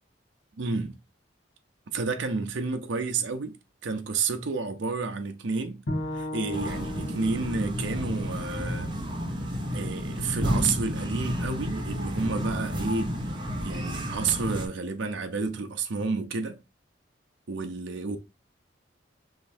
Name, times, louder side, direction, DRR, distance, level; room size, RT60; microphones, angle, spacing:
voice 1, 0.6-1.0 1.9-3.6 3.8-5.8 6.1-8.9 9.7-13.1 13.6-16.6 17.5-18.2, right 4 dB, 80° right, 0.6 m, -30 dB
Bowed string instrument, 5.9-9.1, left 1 dB, 90° left, 1.2 m, -36 dB
sound 1, 6.5-14.7, equal, 25° right, 0.8 m, -31 dB
5.1 x 3.2 x 2.6 m
head